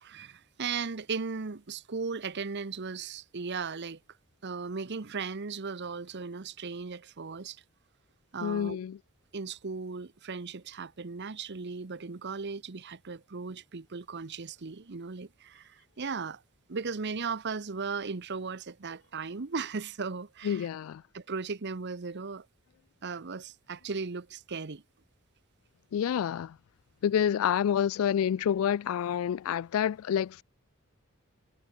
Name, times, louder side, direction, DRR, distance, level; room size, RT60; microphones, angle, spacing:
voice 1, 0.0-4.0 4.4-7.6 8.3-8.8 9.3-16.4 16.7-20.7 21.1-22.5 23.0-24.8, right 5 dB, 50° right, 0.8 m, -37 dB
voice 2, 8.4-9.0 20.4-21.0 25.9-26.6 27.0-30.4, left 9 dB, 70° left, 0.3 m, -28 dB
head